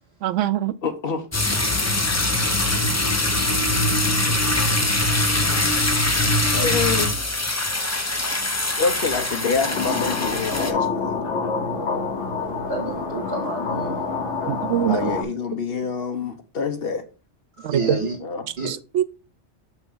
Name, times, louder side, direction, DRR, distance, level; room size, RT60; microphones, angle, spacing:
voice 1, 0.2-0.7 14.5-15.1 17.6-18.0 18.7-19.0, right 11 dB, 75° right, 1.0 m, -23 dB
voice 2, 0.8-1.3 6.5-7.1 8.8-11.2 14.9-17.0 18.2-18.5, left 5 dB, 55° left, 1.2 m, -26 dB
sound 1, 1.3-10.7, left 1 dB, 15° left, 0.7 m, -22 dB
sound 2, 9.6-15.2, left 4 dB, 70° left, 1.6 m, -27 dB
voice 3, 12.7-14.1 15.0-15.1 17.6-18.2 18.6-18.7, right 3 dB, 55° right, 2.9 m, -29 dB
6.8 x 5.9 x 3.9 m
omnidirectional pair, 1.3 m